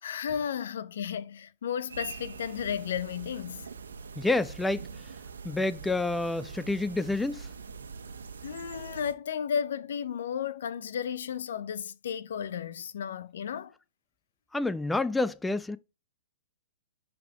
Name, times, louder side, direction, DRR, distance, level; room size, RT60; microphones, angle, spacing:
voice 1, 0.0-3.7 8.4-13.7, left 8 dB, 65° left, 0.6 m, -33 dB
sound 1, 1.9-9.1, right 5 dB, 80° right, 1.2 m, -43 dB
voice 2, 4.2-4.9 5.4-7.5 14.5-15.8, left 2 dB, 5° left, 0.4 m, -28 dB
10.5 x 3.7 x 4.8 m
hypercardioid pair, 120°, 0 cm